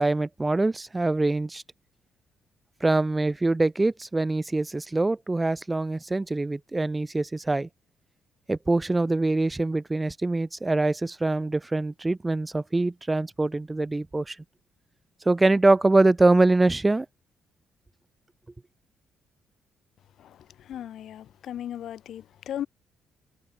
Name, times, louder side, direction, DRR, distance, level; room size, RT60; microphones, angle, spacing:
voice 1, 0.0-1.6 2.8-7.7 8.5-14.4 15.3-17.1, right 2 dB, 15° right, 0.5 m, -24 dB
voice 2, 20.2-22.7, left 10 dB, 70° left, 0.4 m, -37 dB
cardioid pair, 90°, 0 cm